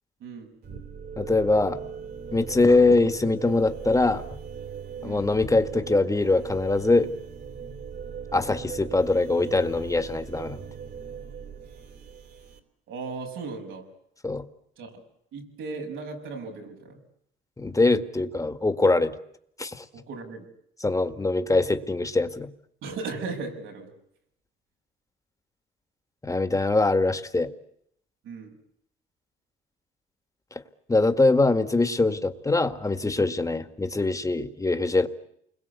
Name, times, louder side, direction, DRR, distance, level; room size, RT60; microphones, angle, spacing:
voice 1, 0.2-0.5 5.0-5.3 12.9-13.9 14.8-15.0 15.3-17.0 19.9-20.5 22.8-23.9 28.2-28.5, right 4 dB, 85° right, 3 dB, 6.5 m, -36 dB
sound 1, 0.6-12.6, right 7 dB, 55° right, 3.3 m, -39 dB
voice 2, 1.2-1.8 2.3-4.2 5.0-7.1 8.3-10.6 14.2-14.4 17.6-19.1 19.6-19.9 20.8-22.5 26.2-27.5 30.9-35.1, left 2 dB, 15° left, 9 dB, 1.9 m, -23 dB
29.0 x 22.0 x 8.3 m, 0.72 s
cardioid pair, 90°, 20 cm